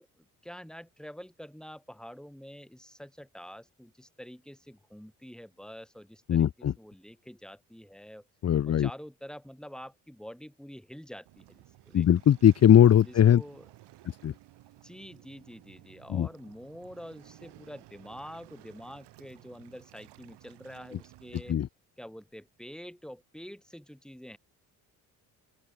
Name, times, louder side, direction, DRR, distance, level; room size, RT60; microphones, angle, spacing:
voice 1, 0.0-8.2 8.6-12.1 13.1-13.6 14.8-21.6 22.0-24.4, equal, ahead, 4.5 m, -47 dB
voice 2, 6.3-6.7 8.4-8.9 11.9-13.4 14.2-14.3 16.1-16.3 21.5-21.7, left 10 dB, 40° left, 0.8 m, -20 dB
Waves surf, 11.3-21.5, right 16 dB, 75° right, 2.7 m, -55 dB
open air
supercardioid pair, 65°, 42 cm